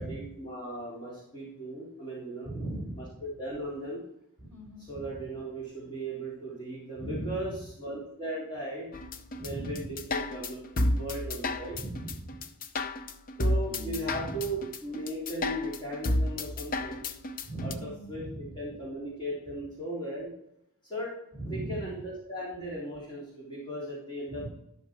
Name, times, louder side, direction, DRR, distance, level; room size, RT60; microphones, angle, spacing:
voice 1, 0.0-2.5 2.9-3.0 3.4-4.0 4.9-8.9 9.4-11.8 13.4-17.0 17.6-20.3 20.8-21.1 21.4-24.5, right 1 dB, 20° left, -7 dB, 3.4 m, -37 dB
voice 2, 2.4-3.2 4.4-5.0 7.0-7.5 9.3-10.0 11.7-12.4 13.7-14.4 17.4-18.8 21.3-21.9 24.3-24.5, right 1 dB, 10° right, -1 dB, 4.8 m, -39 dB
sound 1, 8.9-17.7, left 1 dB, 40° left, 0.7 m, -31 dB
12.5 x 6.0 x 4.6 m, 0.77 s
head